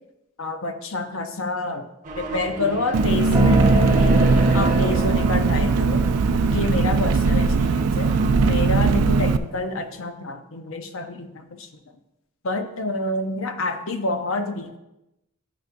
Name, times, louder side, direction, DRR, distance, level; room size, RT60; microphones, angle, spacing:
voice 1, 0.4-1.9 2.2-4.1 4.5-6.1 6.4-8.1 8.4-11.7 12.4-14.8, left 2 dB, 60° left, 7 dB, 0.7 m, -28 dB
sound 1, 2.0-9.3, right 2 dB, 35° right, 0.8 m, -33 dB
Engine, 2.9-9.4, right 4 dB, 85° right, 0.4 m, -20 dB
sound 2, 3.3-8.9, right 2 dB, 15° right, 0.4 m, -25 dB
12.0 x 6.1 x 2.6 m, 0.90 s
head